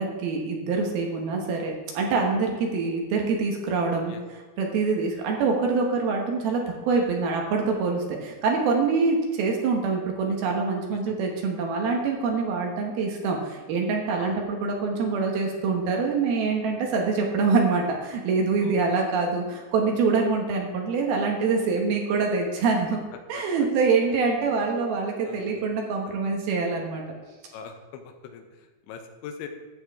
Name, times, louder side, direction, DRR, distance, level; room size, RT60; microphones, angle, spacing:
voice 1, 0.0-4.1 4.6-23.0 23.3-27.0, right 4 dB, 70° right, 1 dB, 2.8 m, -25 dB
voice 2, 10.9-11.2 14.2-14.4 18.6-18.8 23.3-23.4 25.2-25.6 26.1-26.2 27.5-29.5, left 7 dB, 90° left, 6 dB, 3.3 m, -42 dB
14.5 x 8.0 x 3.6 m, 1.3 s
omnidirectional pair, 5.1 m